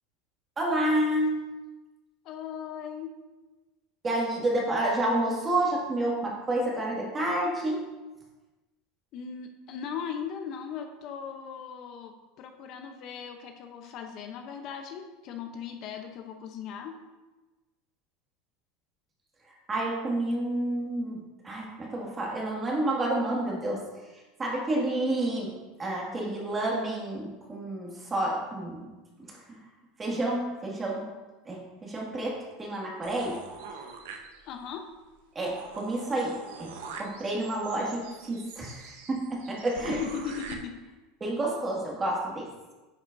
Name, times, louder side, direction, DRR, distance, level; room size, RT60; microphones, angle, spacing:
voice 1, 0.6-1.3 4.0-7.8 19.7-23.8 24.4-25.5 25.8-28.9 29.5-29.6 30.0-31.0 31.5-33.4 35.4-40.0 41.2-42.5, right 1 dB, 20° right, -2 dB, 1.9 m, -29 dB
voice 2, 2.2-3.1 9.1-17.0 34.5-34.8 39.9-40.7, left 7 dB, 50° left, 5 dB, 0.7 m, -38 dB
sound 1, 33.0-34.7 35.1-35.2 35.4-40.5, right 5 dB, 85° right, 0.9 m, -44 dB
9.8 x 6.2 x 2.6 m, 1.2 s
supercardioid pair, 140°, 0 cm